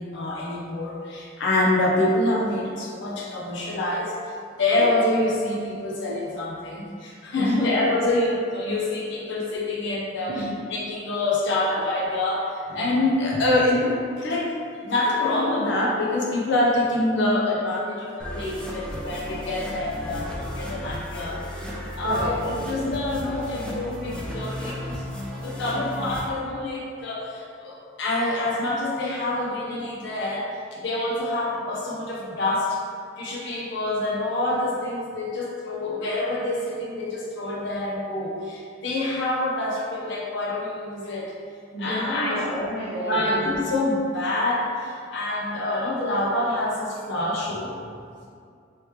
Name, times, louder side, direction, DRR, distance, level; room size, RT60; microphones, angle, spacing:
voice 1, 0.0-14.5 14.8-25.0 25.4-32.8 33.2-41.4 41.8-42.5 43.1-47.9, left 2 dB, 65° left, -3 dB, 0.7 m, -26 dB
voice 2, 7.4-7.7 10.3-10.6 22.0-22.4 41.7-43.4, equal, 90° left, -9 dB, 1.2 m, -30 dB
sound 1, 18.2-26.2, equal, 5° left, 0.4 m, -34 dB
3.2 x 3.0 x 3.1 m, 2.3 s
head